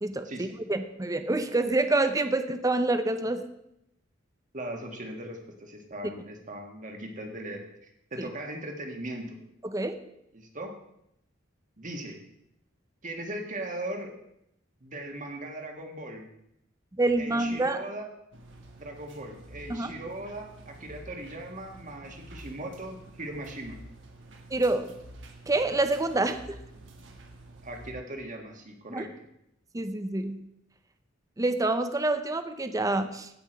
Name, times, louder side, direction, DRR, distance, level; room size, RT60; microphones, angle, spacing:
voice 1, 0.0-3.4 8.2-8.3 9.6-9.9 17.0-17.8 19.7-19.9 24.5-25.0 25.5-26.6 28.9-29.0 29.7-30.4 31.4-33.3, right 2 dB, 15° right, 9 dB, 0.6 m, -27 dB
voice 2, 4.5-9.4 10.3-10.7 11.8-12.2 13.0-14.1 14.8-16.3 17.2-18.1 18.8-23.8 27.6-29.3, right 1 dB, 40° right, 3 dB, 1.6 m, -39 dB
sound 1, 18.3-27.9, right 1 dB, 65° right, 1.6 m, -49 dB
15.5 x 5.9 x 4.6 m, 0.79 s
head